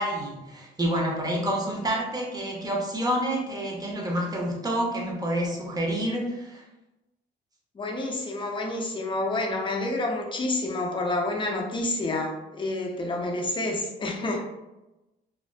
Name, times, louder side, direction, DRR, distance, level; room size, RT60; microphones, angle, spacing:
voice 1, 0.0-6.6, right 1 dB, 20° right, -1 dB, 0.7 m, -28 dB
voice 2, 7.7-14.4, left 2 dB, 25° left, 0 dB, 0.5 m, -29 dB
2.5 x 2.4 x 2.2 m, 0.99 s
cardioid pair, 90°, 20 cm